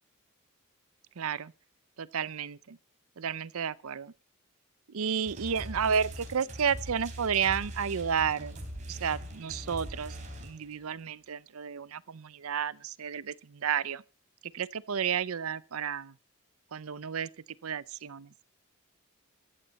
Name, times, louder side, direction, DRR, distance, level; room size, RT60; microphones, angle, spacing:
voice 1, 1.2-1.5 2.0-2.8 3.2-4.1 4.9-8.6 8.9-14.0 14.4-16.1 16.7-17.3 17.6-18.3, right 7 dB, 80° right, 0.6 m, -32 dB
sound 1, 5.3-10.8, right 1 dB, 35° right, 4.1 m, -42 dB
15.0 x 14.5 x 4.1 m
head